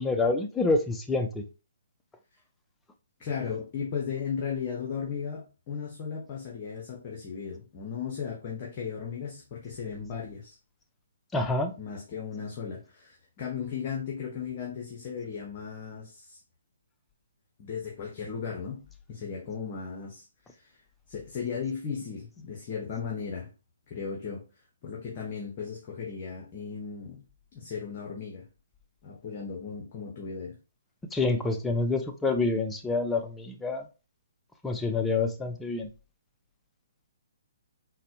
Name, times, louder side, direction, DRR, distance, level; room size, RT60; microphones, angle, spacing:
voice 1, 0.0-1.4 11.3-11.7 31.1-33.9 34.6-35.9, left 3 dB, 10° left, 0.4 m, -27 dB
voice 2, 3.2-10.5 11.8-16.4 17.6-20.2 20.5-20.7 21.1-23.5 23.9-24.4 24.8-27.2 27.5-28.5 29.0-30.6, left 6 dB, 40° left, 0.8 m, -36 dB
3.9 x 2.1 x 2.7 m
figure-of-eight pair, 135°, 0 cm